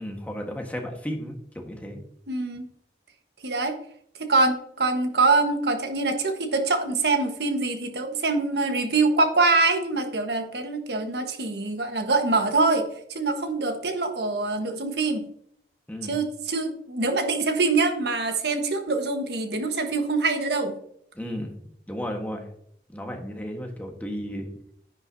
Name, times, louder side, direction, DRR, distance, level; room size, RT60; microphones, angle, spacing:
voice 1, 0.0-2.0 15.9-16.2 21.1-21.5 21.9-22.5 22.9-24.5, equal, 10° left, 2 dB, 1.4 m, -34 dB
voice 2, 2.3-2.7 3.4-3.7 4.2-15.3 16.0-20.7, right 3 dB, 70° right, 6 dB, 1.4 m, -24 dB
10.5 x 9.0 x 2.7 m, 0.69 s
head